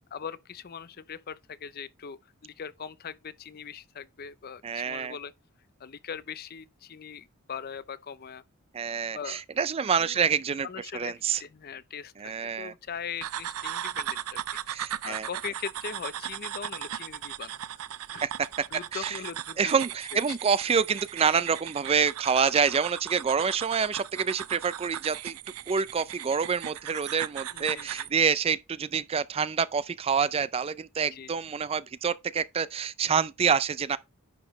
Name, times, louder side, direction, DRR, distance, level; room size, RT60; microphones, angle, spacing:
voice 1, 0.1-5.3 5.8-8.4 9.1-9.4 10.0-10.2 10.6-11.1 11.4-14.4 14.7-17.6 18.1-18.3 18.7-19.9 20.1-20.4 27.5-28.1 31.1-31.3, left 7 dB, 45° left, 0.5 m, -40 dB
voice 2, 4.6-5.1 8.7-10.7 10.9-11.4 12.2-12.7 14.7-15.3 18.2-18.5 18.9-19.2 19.6-25.4 25.7-34.0, right 6 dB, 25° right, 0.3 m, -27 dB
sound 1, 13.2-28.2, right 11 dB, 85° right, 0.5 m, -37 dB
10.5 x 6.0 x 3.1 m
head